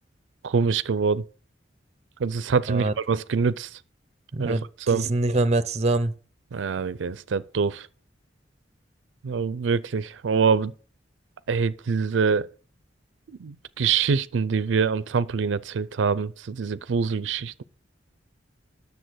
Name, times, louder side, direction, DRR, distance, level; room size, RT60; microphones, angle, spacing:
voice 1, 0.4-1.2 2.2-3.7 4.4-4.6 4.9-5.1 6.5-7.9 9.2-10.7 11.5-12.5 13.3-17.6, right 5 dB, 85° right, 0.4 m, -25 dB
voice 2, 4.3-6.1, right 2 dB, 35° right, 0.6 m, -24 dB
10.0 x 6.9 x 6.2 m
head